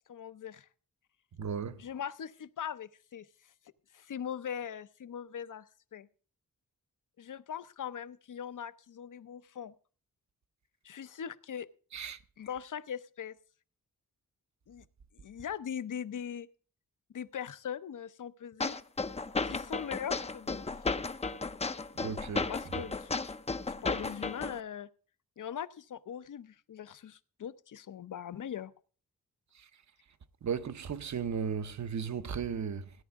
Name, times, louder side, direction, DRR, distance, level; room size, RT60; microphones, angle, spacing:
voice 1, 0.1-0.7 1.8-3.3 3.9-5.6 5.9-6.1 7.2-9.7 10.8-11.7 12.4-13.3 14.7-14.8 15.2-16.5 17.1-18.8 19.4-20.9 22.5-23.3 23.8-24.9 25.4-28.7, left 8 dB, 70° left, 0.7 m, -41 dB
voice 2, 1.4-1.8 11.9-12.2 22.0-22.8 29.5-29.7 30.4-32.9, right 7 dB, 60° right, 0.9 m, -36 dB
sound 1, 18.6-24.6, left 4 dB, 20° left, 0.5 m, -34 dB
17.0 x 10.5 x 3.6 m
wide cardioid pair, 175°, 32 cm